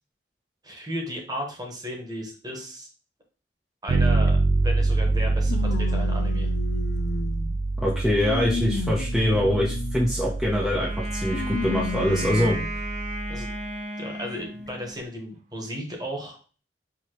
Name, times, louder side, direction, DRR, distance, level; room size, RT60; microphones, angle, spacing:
voice 1, 0.6-2.9 3.8-4.4 4.6-6.5 13.3-13.5 14.0-16.4, equal, 25° right, 1 dB, 1.2 m, -34 dB
Bass guitar, 3.9-13.6, right 3 dB, 80° right, 0.4 m, -26 dB
sound 1, 4.3-4.4 5.5-7.5 8.1-10.1 11.3-12.7 13.4-13.5 14.7-14.8, left 3 dB, 65° left, 0.3 m, -33 dB
voice 2, 7.8-12.6, left 1 dB, ahead, -6 dB, 0.7 m, -24 dB
Wind instrument woodwind instrument, 10.8-15.0, right 1 dB, 45° right, 1.0 m, -34 dB
4.8 x 2.9 x 3.0 m, 0.37 s
head